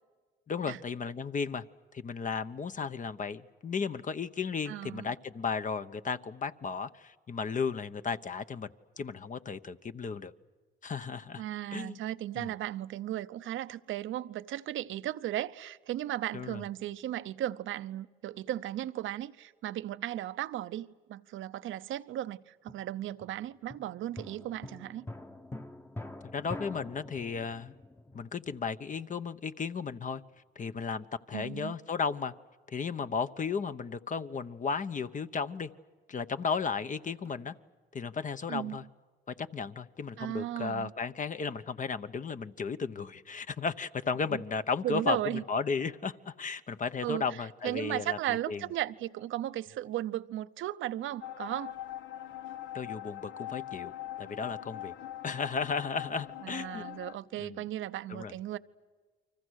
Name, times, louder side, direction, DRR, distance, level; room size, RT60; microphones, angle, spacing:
voice 1, 0.5-1.6 1.9-8.7 9.0-10.3 10.8-11.4 11.7-12.0 12.4-12.5 16.3-16.6 26.2-27.7 28.1-30.2 30.5-32.3 32.7-35.7 36.1-37.5 37.9-38.8 39.4-48.6 52.7-54.9 55.2-56.8 57.4-57.6 58.1-58.3, left 5 dB, 40° left, 1.0 m, -34 dB
voice 2, 4.7-5.1 11.4-25.0 31.3-31.7 38.5-38.8 40.2-40.9 44.3-44.4 44.8-45.4 47.0-51.7 56.4-58.6, right 13 dB, 80° right, 0.8 m, -36 dB
sound 1, 22.7-29.0 36.5-37.7, left 1 dB, 10° left, 1.1 m, -46 dB
sound 2, 51.2-57.2, left 12 dB, 70° left, 1.1 m, -42 dB
30.0 x 24.5 x 6.5 m
cardioid pair, 90°, 20 cm